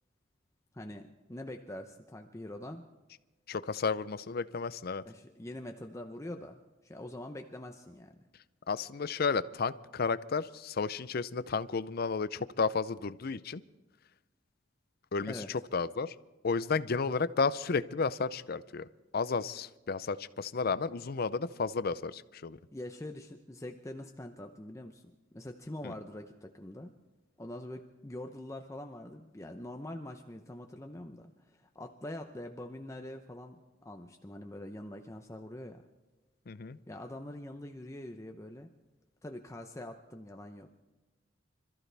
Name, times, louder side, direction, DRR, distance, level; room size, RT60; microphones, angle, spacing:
voice 1, 0.7-2.8 5.1-8.2 15.3-15.5 22.7-26.9 27.4-33.6 33.8-35.8 36.9-38.7 39.2-40.8, left 1 dB, 15° left, 5 dB, 0.7 m, -44 dB
voice 2, 3.5-5.0 8.7-13.6 15.1-16.1 16.4-18.9 19.1-22.6 25.8-25.9 36.5-36.8, left 4 dB, 50° left, 16 dB, 0.5 m, -32 dB
26.0 x 14.0 x 3.4 m, 1.2 s
head